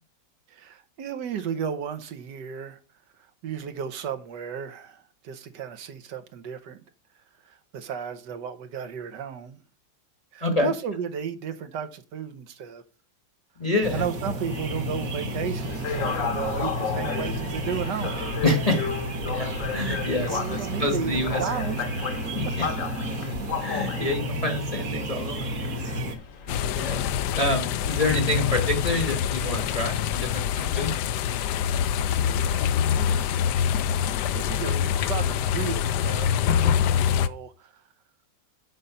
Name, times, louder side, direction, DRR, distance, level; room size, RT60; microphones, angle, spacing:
voice 1, 0.5-2.8 3.4-6.8 7.4-9.6 10.3-12.8 13.9-18.2 20.0-21.8 26.5-26.9 32.9-33.3 34.3-37.7, right 7 dB, 70° right, 1.5 m, -34 dB
voice 2, 13.6-14.0 18.4-18.8 19.3-19.5 19.7-21.4 22.3-22.7 23.6-25.5 25.8-25.9 26.7-27.0 27.4-30.9, left 2 dB, 25° left, 1.0 m, -27 dB
sound 1, 13.8-26.2, equal, 50° right, 1.8 m, -31 dB
sound 2, 15.6-27.4, left 6 dB, 50° left, 1.2 m, -34 dB
sound 3, 26.5-37.3, left 8 dB, 75° left, 1.1 m, -25 dB
8.6 x 5.2 x 5.5 m
omnidirectional pair, 2.0 m